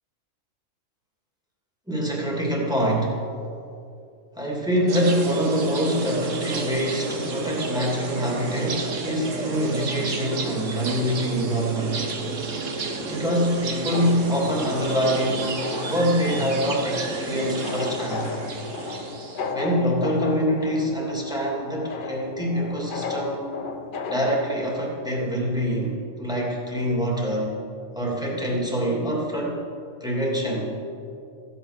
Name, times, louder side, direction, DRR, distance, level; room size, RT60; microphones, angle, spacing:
voice 1, 1.9-3.1 4.4-12.0 13.1-15.5 15.8-18.2 19.5-23.4 24.1-25.9 26.2-27.6 28.0-29.6 30.0-30.7, equal, 5° right, -3 dB, 2.5 m, -25 dB
sound 1, 4.9-19.5, right 3 dB, 70° right, 1.4 m, -31 dB
sound 2, 13.9-24.5, left 4 dB, 45° left, 0.8 m, -35 dB
15.5 x 8.8 x 6.6 m, 2.6 s
omnidirectional pair, 1.4 m